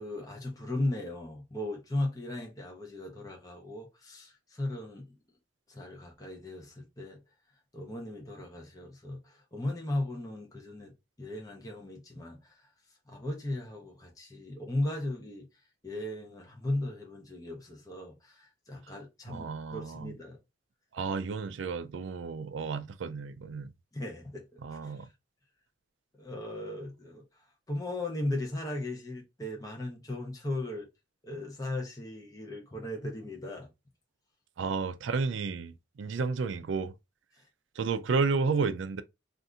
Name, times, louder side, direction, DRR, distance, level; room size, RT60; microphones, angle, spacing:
voice 1, 0.0-5.2 5.7-7.2 7.7-10.9 11.2-12.5 13.1-15.5 15.8-20.4 23.9-24.4 24.7-25.1 26.2-27.2 27.7-30.9 31.2-33.7 37.4-37.5, left 1 dB, 20° left, 0.7 m, -37 dB
voice 2, 19.3-20.1 20.9-23.7 24.6-25.1 34.6-36.9 37.8-39.0, right 4 dB, 75° right, 0.4 m, -32 dB
2.7 x 2.5 x 3.5 m
head